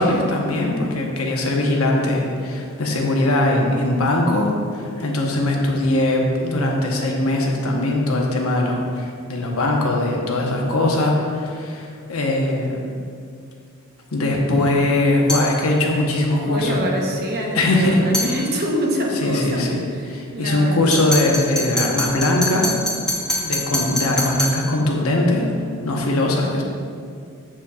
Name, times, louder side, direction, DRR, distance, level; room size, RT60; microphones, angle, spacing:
voice 1, 0.0-12.8 14.1-16.8 17.5-18.0 19.2-19.8 20.1-22.7 23.4-25.5 25.8-26.6, left 1 dB, 75° left, 0 dB, 0.9 m, -20 dB
sound 1, 15.3-15.5 18.1-18.3 20.9-24.6, left 1 dB, 5° left, 1.0 m, -24 dB
voice 2, 16.4-21.0, equal, 45° right, 0 dB, 0.9 m, -25 dB
7.4 x 7.1 x 2.3 m, 2.3 s
head